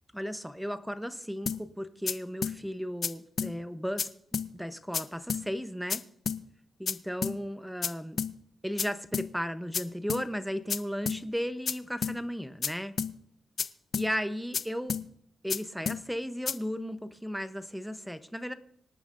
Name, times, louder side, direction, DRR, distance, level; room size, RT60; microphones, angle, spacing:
voice 1, 0.1-4.1 4.5-6.0 6.8-8.2 8.6-12.9 13.9-14.9 15.4-18.5, equal, ahead, 11 dB, 0.7 m, -35 dB
sound 1, 1.5-1.6 2.1-2.2 2.4-2.6 3.0-3.1 3.4-3.5 4.0-4.1 4.3-4.5 4.9-5.0 5.3-5.4 5.9-6.0 6.3-6.4 6.9-7.0 7.2-7.4 7.8-7.9 8.2-8.3 8.8-8.9 9.1-9.3 9.7-9.8 10.1-10.2 10.7-10.8 11.1-11.2 11.7-11.8 12.0-12.2 12.6-12.7 13.0-13.1 13.6-13.7 13.9-14.1 14.5-14.6 14.9-15.0 15.5-15.6 15.9-16.0 16.5-16.6, left 6 dB, 55° left, 0.6 m, -30 dB
26.0 x 9.0 x 2.5 m, 0.67 s
cardioid pair, 115°, 0 cm